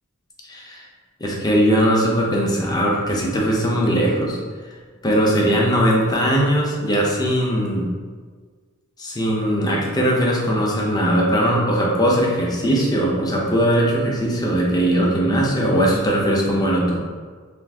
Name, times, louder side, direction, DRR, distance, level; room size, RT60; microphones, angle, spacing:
voice 1, 0.4-0.8 1.2-4.4 5.0-7.9 9.0-17.0, equal, 20° left, -3 dB, 0.5 m, -19 dB
2.5 x 2.4 x 3.4 m, 1.6 s
head